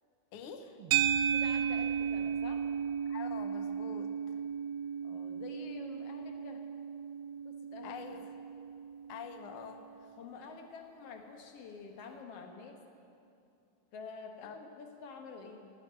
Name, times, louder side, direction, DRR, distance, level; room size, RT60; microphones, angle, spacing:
voice 1, 0.3-0.8 3.1-4.4 7.8-8.3 9.1-10.1 14.4-14.6, left 7 dB, 90° left, 7 dB, 1.2 m, -46 dB
sound 1, 0.8-5.1, right 5 dB, 60° right, 2.3 m, -55 dB
sound 2, 0.9-9.3, right 8 dB, 75° right, 1.7 m, -34 dB
voice 2, 1.3-2.6 5.0-6.6 7.4-8.0 10.2-12.8 13.9-15.7, left 5 dB, 60° left, 4 dB, 2.0 m, -48 dB
14.5 x 9.2 x 9.3 m, 2.6 s
omnidirectional pair, 3.6 m